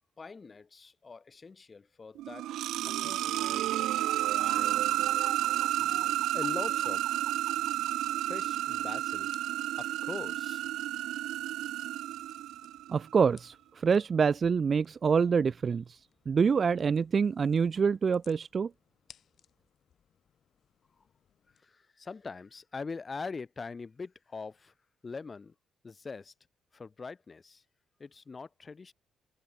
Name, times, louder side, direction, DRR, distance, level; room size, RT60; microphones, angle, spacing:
voice 1, 0.2-2.6 2.8-3.9 4.3-4.9 6.2-7.3 8.1-9.3 9.8-10.7 11.1-11.2 21.5-24.7 25.0-25.5 25.8-26.3 26.7-27.6 28.0-28.9, left 4 dB, 30° left, 3.4 m, -43 dB
sound 1, 2.2-12.9, right 14 dB, 85° right, 0.6 m, -31 dB
sound 2, 5.4-21.6, left 8 dB, 60° left, 7.5 m, -65 dB
voice 2, 12.9-16.0 16.3-18.7, right 6 dB, 40° right, 0.6 m, -26 dB
cardioid pair, 90°, 0 cm